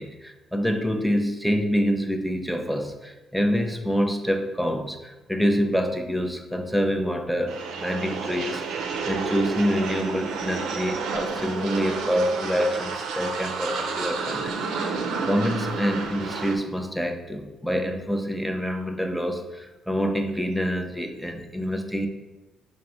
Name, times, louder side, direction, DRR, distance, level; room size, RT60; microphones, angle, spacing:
voice 1, 0.0-8.6 9.0-14.6 14.8-22.1, equal, ahead, 5 dB, 0.5 m, -26 dB
sound 1, 7.5-16.6, right 4 dB, 85° right, 0.5 m, -30 dB
4.8 x 2.1 x 4.4 m, 1.1 s
cardioid pair, 90°, 0 cm